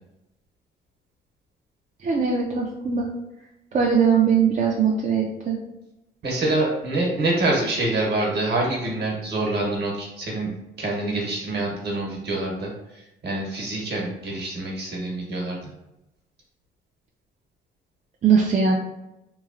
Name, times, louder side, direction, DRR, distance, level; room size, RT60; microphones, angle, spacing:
voice 1, 2.0-3.1 3.7-5.6 18.2-18.7, right 6 dB, 40° right, -2 dB, 0.4 m, -20 dB
voice 2, 6.2-10.5 10.8-15.7, right 2 dB, 55° right, -1 dB, 1.1 m, -26 dB
3.0 x 2.4 x 2.5 m, 0.92 s
cardioid pair, 90°, 20 cm